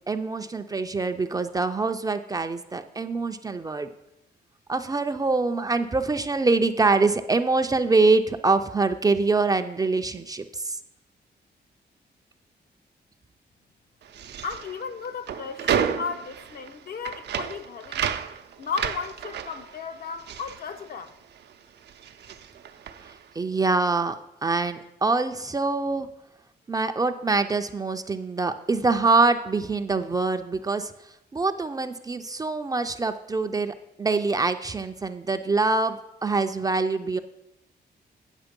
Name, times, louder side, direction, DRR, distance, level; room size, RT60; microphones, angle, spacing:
voice 1, 0.1-3.9 4.7-10.8 23.4-24.1 24.4-26.1 26.7-30.9 31.3-37.2, right 3 dB, 20° right, 0.4 m, -24 dB
sound 1, 14.0-21.5 21.8-23.3, right 8 dB, 70° right, 0.6 m, -32 dB
voice 2, 14.4-18.1 18.6-21.1, left 5 dB, 60° left, 0.6 m, -35 dB
9.1 x 6.4 x 5.2 m
wide cardioid pair, 145°, 18 cm